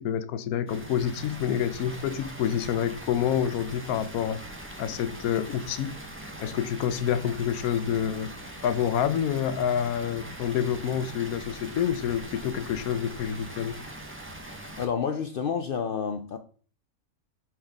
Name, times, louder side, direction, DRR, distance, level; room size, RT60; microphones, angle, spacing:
voice 1, 0.0-4.4 4.8-6.0 6.4-8.3 8.6-13.8, left 9 dB, 90° left, 1.1 m, -28 dB
Water, 0.7-14.9, right 1 dB, 10° right, 0.8 m, -42 dB
voice 2, 14.8-16.4, left 6 dB, 70° left, 0.5 m, -29 dB
5.8 x 5.6 x 3.5 m
omnidirectional pair, 1.5 m